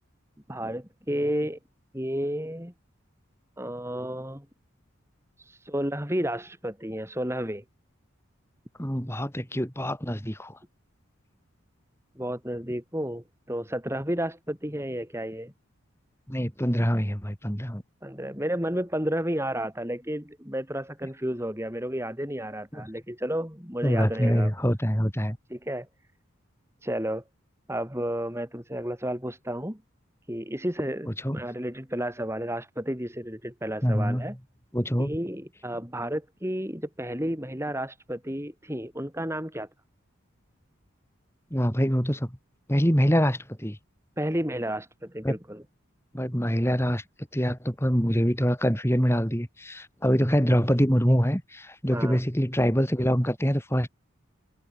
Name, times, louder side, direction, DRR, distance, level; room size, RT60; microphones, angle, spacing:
voice 1, 0.5-1.6 1.9-2.7 3.6-4.5 5.4-7.6 12.2-15.5 18.0-24.5 25.5-25.9 26.8-27.2 27.7-29.8 30.3-34.3 35.0-39.7 44.2-45.6 51.9-52.2, equal, 10° right, 4.3 m, -32 dB
voice 2, 8.8-10.6 16.3-17.8 22.7-22.9 23.8-25.4 31.1-31.4 33.8-34.4 34.7-35.1 41.5-42.4 42.7-43.8 45.2-45.3 46.1-47.0 47.3-53.9, equal, 10° left, 5.7 m, -25 dB
head